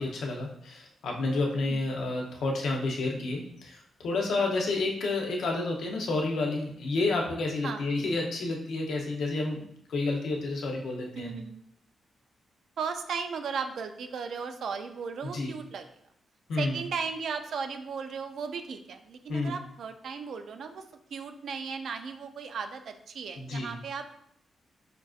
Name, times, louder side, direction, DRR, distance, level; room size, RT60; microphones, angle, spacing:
voice 1, 0.0-9.6 9.9-11.3 15.2-15.5 16.5-16.8 19.3-19.5 23.4-23.7, left 2 dB, 70° left, 0 dB, 0.7 m, -30 dB
voice 2, 11.2-11.6 12.8-15.9 16.6-20.8 21.1-24.0, right 5 dB, 65° right, 7 dB, 0.4 m, -36 dB
5.1 x 2.5 x 2.4 m, 0.71 s
wide cardioid pair, 165°, 0 cm